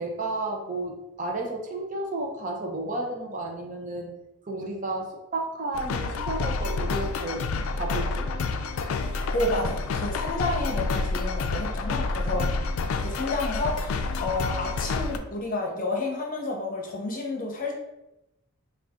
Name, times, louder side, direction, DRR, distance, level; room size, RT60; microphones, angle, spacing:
voice 1, 0.0-4.1 4.4-7.4 7.7-8.3, right 2 dB, 35° right, 1 dB, 0.6 m, -32 dB
sound 1, 5.7-15.2, left 3 dB, 85° left, 0.3 m, -29 dB
voice 2, 9.3-12.5 13.0-17.7, left 2 dB, 40° left, 0 dB, 0.7 m, -30 dB
3.9 x 2.4 x 3.6 m, 0.93 s
head